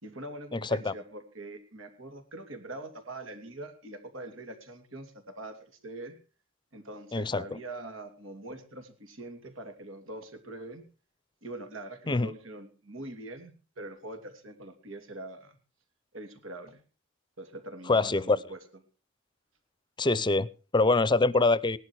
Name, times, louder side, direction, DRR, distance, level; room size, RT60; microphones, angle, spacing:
voice 1, 0.0-6.2 6.7-10.8 11.4-15.6 16.1-16.8 17.4-18.6, right 2 dB, 85° right, 7 dB, 3.1 m, -43 dB
voice 2, 0.5-0.9 7.1-7.4 12.1-12.3 17.9-18.4 20.0-21.8, left 3 dB, 25° left, 20 dB, 0.6 m, -25 dB
18.0 x 12.0 x 4.7 m, 0.35 s
head